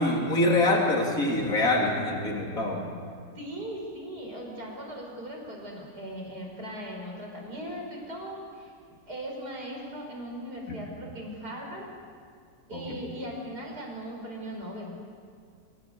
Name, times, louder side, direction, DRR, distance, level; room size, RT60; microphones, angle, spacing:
voice 1, 0.0-2.8 10.7-10.8 12.7-13.0, left 2 dB, 50° left, -1 dB, 4.0 m, -25 dB
voice 2, 3.3-8.7 9.1-11.9 12.7-15.0, equal, 60° right, 0 dB, 6.0 m, -38 dB
28.5 x 19.5 x 8.1 m, 2.1 s
omnidirectional pair, 1.9 m